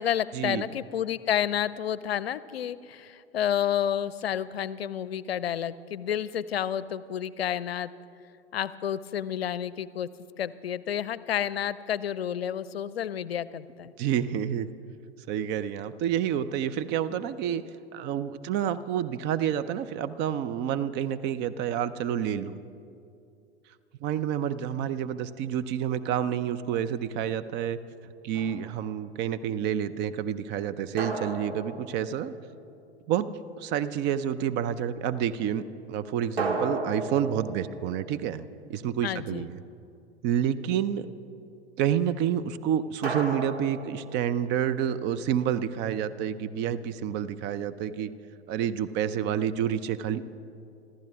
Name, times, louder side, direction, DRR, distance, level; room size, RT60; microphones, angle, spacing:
voice 1, 0.0-7.9 8.5-10.1 10.4-13.9 39.0-39.5, left 9 dB, 70° left, 18 dB, 0.6 m, -30 dB
voice 2, 14.0-14.7 15.3-17.6 17.9-22.6 24.0-27.8 28.2-32.3 33.1-33.3 33.6-38.4 38.7-39.6 40.2-41.1 41.8-48.1 48.5-50.3, right 9 dB, 35° right, 13 dB, 0.6 m, -29 dB
sound 1, 28.3-28.9 31.0-32.8 36.4-39.0 43.0-44.7, right 3 dB, 75° right, 2.2 m, -35 dB
26.5 x 14.0 x 3.5 m, 2.5 s
figure-of-eight pair, 85°, 31 cm